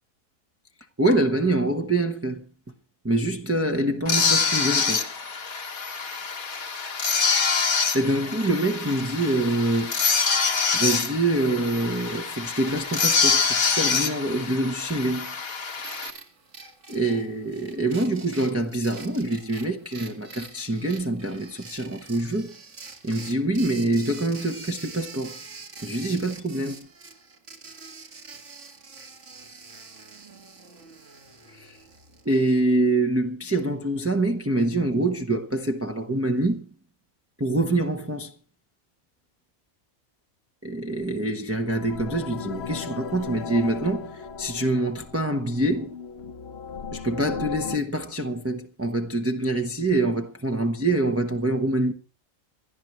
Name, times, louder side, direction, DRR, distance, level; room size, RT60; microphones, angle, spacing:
voice 1, 1.0-2.4 3.0-5.1 7.9-9.9 10.7-15.3 16.9-22.6 23.0-25.4 25.8-26.8 31.5-31.8 32.2-36.7 37.4-38.3 40.6-46.0 46.9-51.9, right 2 dB, 10° right, 0.8 m, -25 dB
sound 1, 4.1-16.1, left 5 dB, 75° left, 2.0 m, -25 dB
sound 2, 15.8-32.8, right 4 dB, 55° right, 2.2 m, -45 dB
sound 3, 41.7-47.8, left 6 dB, 50° left, 1.1 m, -36 dB
27.0 x 12.0 x 3.1 m
omnidirectional pair, 1.5 m